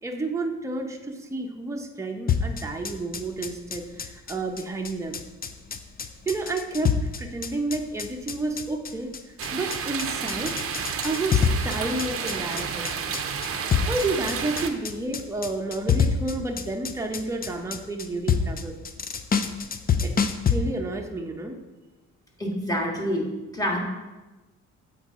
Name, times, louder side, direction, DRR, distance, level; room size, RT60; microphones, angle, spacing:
voice 1, 0.0-5.2 6.3-9.1 9.5-10.5 11.0-13.0 13.9-18.7 20.0-20.1 20.5-21.6, right 2 dB, 10° right, 2 dB, 0.8 m, -30 dB
sound 1, 2.3-20.6, left 6 dB, 30° left, 0.5 m, -27 dB
sound 2, 9.4-14.7, right 6 dB, 50° right, 0.7 m, -31 dB
voice 2, 22.4-23.2 23.5-23.8, equal, 10° left, -2 dB, 1.8 m, -26 dB
7.9 x 4.7 x 3.7 m, 1.2 s
cardioid pair, 90°, 30 cm